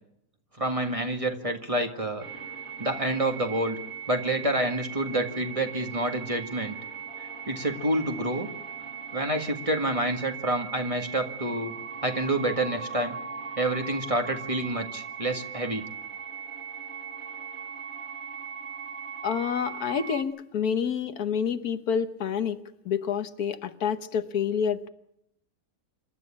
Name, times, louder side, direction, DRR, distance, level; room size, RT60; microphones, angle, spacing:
voice 1, 0.6-2.3 2.8-3.8 4.1-6.8 7.2-8.5 9.1-11.7 12.0-13.2 13.6-15.8, right 1 dB, 25° right, 5 dB, 1.8 m, -28 dB
sound 1, 2.2-20.2, right 7 dB, 50° right, 2.2 m, -39 dB
voice 2, 19.2-24.9, left 7 dB, 85° left, 10 dB, 1.6 m, -28 dB
27.0 x 12.5 x 8.7 m, 0.75 s
omnidirectional pair, 1.6 m